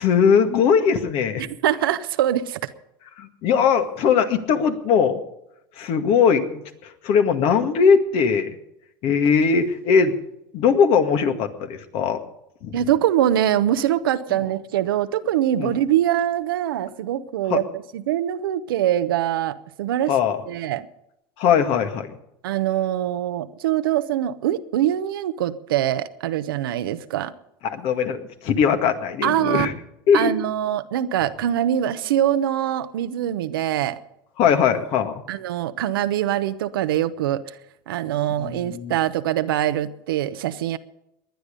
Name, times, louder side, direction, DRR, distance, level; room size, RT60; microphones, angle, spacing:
voice 1, 0.0-1.5 3.2-5.2 5.8-8.6 9.0-10.1 10.5-12.2 12.6-12.8 15.6-15.8 17.5-17.6 20.1-20.4 21.4-22.1 27.6-29.7 30.1-30.3 34.4-35.2 38.4-38.9, left 6 dB, 60° left, 7 dB, 2.0 m, -20 dB
voice 2, 1.4-2.6 12.7-20.1 20.5-20.8 22.4-27.3 29.2-29.7 30.1-34.0 35.3-37.4 37.9-40.8, right 11 dB, 90° right, 10 dB, 0.8 m, -23 dB
19.5 x 10.5 x 5.3 m, 0.82 s
supercardioid pair, 100°, 11 cm